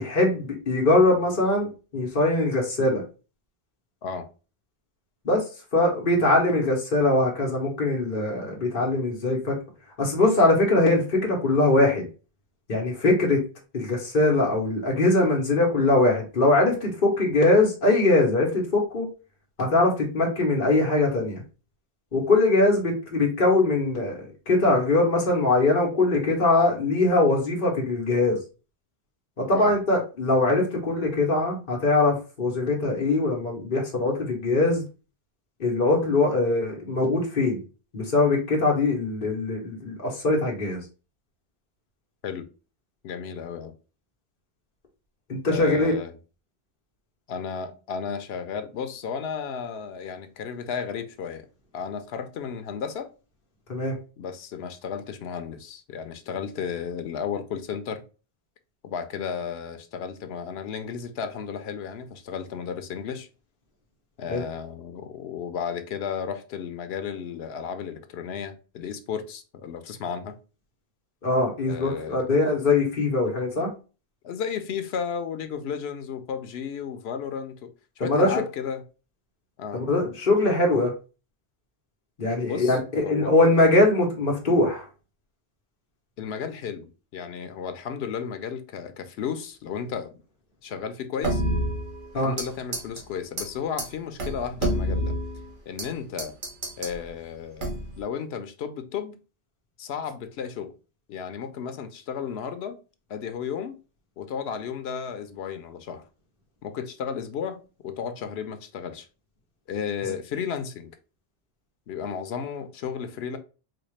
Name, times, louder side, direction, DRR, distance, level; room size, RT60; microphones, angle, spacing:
voice 1, 0.0-3.0 5.2-5.4 5.7-9.6 10.0-12.0 12.7-13.4 13.7-19.1 19.6-21.4 22.1-28.4 29.4-34.8 35.6-37.6 37.9-40.8 45.3-45.9 53.7-54.0 64.3-64.4 71.2-73.7 78.0-78.3 79.7-80.9 82.2-84.8 92.1-92.3, left 2 dB, 50° left, 1.0 m, -22 dB
voice 2, 43.0-43.7 45.5-46.1 47.3-51.5 51.7-53.1 54.2-58.0 58.8-63.3 64.2-70.4 71.7-72.3 74.2-77.7 78.0-78.8 79.6-79.8 82.4-83.3 86.2-90.1 90.6-91.4 92.2-95.1 95.7-96.3 96.8-97.7 98.0-99.2 99.8-100.7 101.1-102.8 103.1-103.8 104.2-106.0 106.6-109.1 109.7-110.9 111.9-113.4, left 7 dB, 85° left, 0.8 m, -33 dB
sound 1, 91.2-92.5 92.7-93.0 93.4-93.5 93.8-93.9 94.2-95.9 96.2-97.0 97.6-98.0, equal, 55° right, 1.1 m, -28 dB
4.3 x 2.3 x 3.1 m
omnidirectional pair, 1.0 m